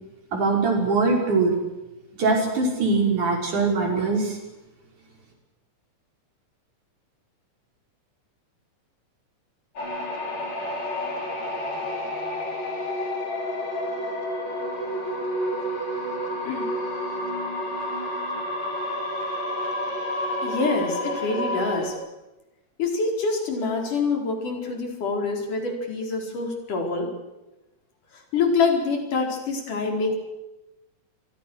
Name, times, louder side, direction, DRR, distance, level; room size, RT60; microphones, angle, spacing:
voice 1, 0.3-1.5 2.2-4.4, right 3 dB, 70° right, 1 dB, 7.2 m, -22 dB
sound 1, 9.8-21.9, left 1 dB, 55° left, 6.3 m, -29 dB
voice 2, 20.4-22.0 22.8-27.1 28.1-30.2, left 4 dB, 80° left, 2 dB, 6.2 m, -26 dB
29.0 x 24.5 x 6.5 m, 0.99 s
omnidirectional pair, 3.6 m